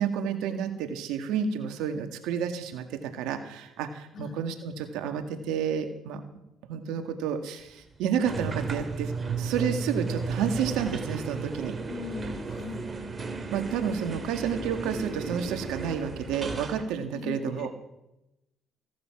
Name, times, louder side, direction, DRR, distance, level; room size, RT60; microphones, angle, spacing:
voice 1, 0.0-6.2 6.7-11.8 13.5-17.7, right 7 dB, 80° right, 7 dB, 1.9 m, -30 dB
voice 2, 4.1-4.4 11.9-12.9 17.1-17.7, left 5 dB, 55° left, 7 dB, 1.9 m, -39 dB
sound 1, 8.3-16.8, right 4 dB, 35° right, 3.2 m, -34 dB
16.5 x 12.5 x 6.0 m, 0.89 s
supercardioid pair, 70°, 0 cm